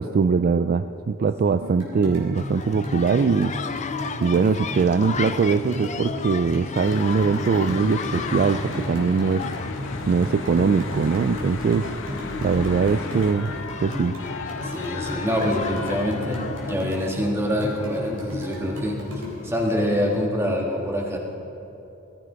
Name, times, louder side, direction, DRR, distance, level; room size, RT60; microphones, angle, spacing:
voice 1, 0.0-3.5 4.2-9.5 10.1-11.9 12.4-13.5 13.8-14.1, right 5 dB, 40° right, 10 dB, 0.3 m, -22 dB
sound 1, 1.6-19.4, left 2 dB, 70° right, 3.8 m, -35 dB
sound 2, 2.3-20.3, left 5 dB, 35° left, 0.5 m, -36 dB
Church bell / Traffic noise roadway noise, 6.8-16.8, left 3 dB, 60° left, 1.0 m, -35 dB
voice 2, 14.6-19.0 19.4-21.2, equal, 10° right, -1 dB, 1.8 m, -25 dB
19.5 x 14.5 x 3.9 m, 2.8 s
head